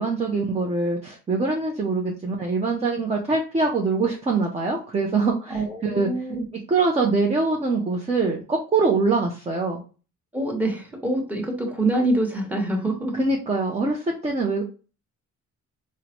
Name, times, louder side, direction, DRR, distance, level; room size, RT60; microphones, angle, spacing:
voice 1, 0.0-6.1 6.7-9.8 13.2-14.6, right 3 dB, 20° right, 0 dB, 0.6 m, -23 dB
voice 2, 5.5-6.5 10.3-13.2, right 1 dB, 5° right, 0 dB, 1.1 m, -25 dB
3.6 x 2.1 x 2.9 m, 0.35 s
cardioid pair, 90°, 30 cm